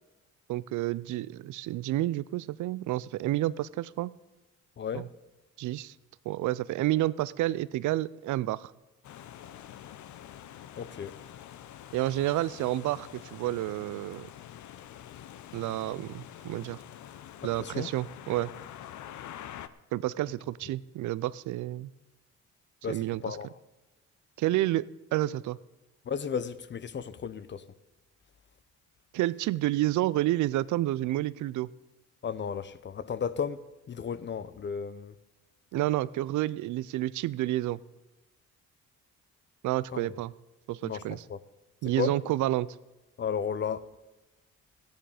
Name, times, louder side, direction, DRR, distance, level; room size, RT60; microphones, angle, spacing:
voice 1, 0.5-4.1 4.9-5.1 5.6-5.9 6.3-8.7 11.9-14.3 15.5-16.8 17.4-18.5 19.9-21.9 22.9-23.4 24.4-25.6 29.1-31.7 35.7-37.8 39.6-40.3 40.7-41.2 41.8-42.7, right 15 dB, 75° right, 0.5 m, -30 dB
voice 2, 4.8-5.1 10.8-11.2 17.4-17.9 22.8-23.5 26.1-27.7 32.2-35.1 39.9-40.1 40.8-41.0 41.3-41.4 42.0-42.1 43.2-43.9, left 7 dB, 40° left, 0.7 m, -34 dB
sound 1, 9.0-19.7, left 11 dB, 70° left, 0.7 m, -46 dB
14.5 x 10.5 x 4.9 m
cardioid pair, 90°, 30 cm